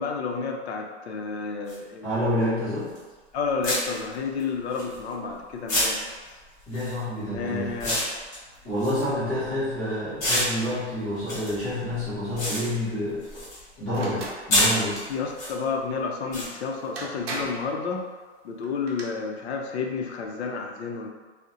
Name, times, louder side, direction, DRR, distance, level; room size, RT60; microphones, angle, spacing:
voice 1, 0.0-2.1 3.3-6.0 7.3-8.0 15.1-18.0 18.4-21.1, left 5 dB, 70° left, 2 dB, 0.5 m, -30 dB
sound 1, 1.7-1.8 3.0-3.1 3.6-5.3 5.7-9.7 10.2-13.7 13.9-15.5 16.3-16.5, left 1 dB, 30° left, 1.1 m, -28 dB
voice 2, 2.0-2.9 6.7-8.0 8.6-13.4 13.8-15.0, left 1 dB, 10° left, -13 dB, 0.3 m, -28 dB
sound 2, 13.9-14.4 16.5-16.6 17.0-17.7 18.6-19.0, right 2 dB, 60° right, 0.7 m, -35 dB
2.7 x 2.1 x 2.4 m, 1.4 s
hypercardioid pair, 160°, 34 cm